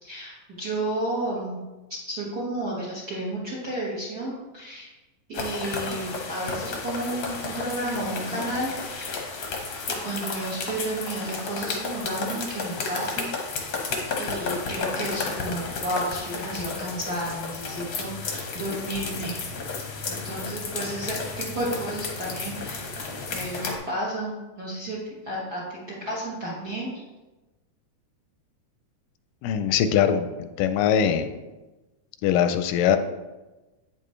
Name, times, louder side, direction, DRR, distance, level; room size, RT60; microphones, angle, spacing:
voice 1, 0.0-1.6 2.1-4.9 5.3-9.2 10.0-13.8 14.2-19.4 20.2-22.9 23.3-25.0 25.2-27.0, right 1 dB, 50° right, -5 dB, 1.1 m, -32 dB
sound 1, 5.3-23.8, left 4 dB, 65° left, 1.2 m, -32 dB
voice 2, 29.4-31.3 32.2-33.0, left 8 dB, 90° left, 9 dB, 2.2 m, -22 dB
8.8 x 6.8 x 3.2 m, 1.1 s
omnidirectional pair, 3.8 m